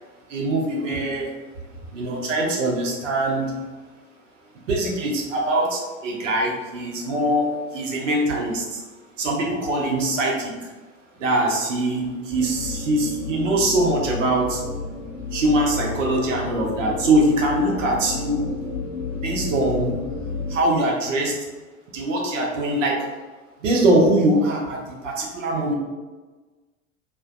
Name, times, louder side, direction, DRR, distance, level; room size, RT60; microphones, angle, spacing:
voice 1, 0.3-1.3 1.9-3.6 4.7-8.8 9.2-10.7 11.2-14.6 15.3-18.5 19.1-19.9 20.5-21.3 21.9-23.1 23.6-25.7, right 1 dB, 75° right, -1 dB, 0.7 m, -22 dB
sound 1, 12.3-20.6, left 4 dB, 50° left, 0.5 m, -31 dB
2.5 x 2.1 x 2.3 m, 1.3 s
figure-of-eight pair, 75°, 39 cm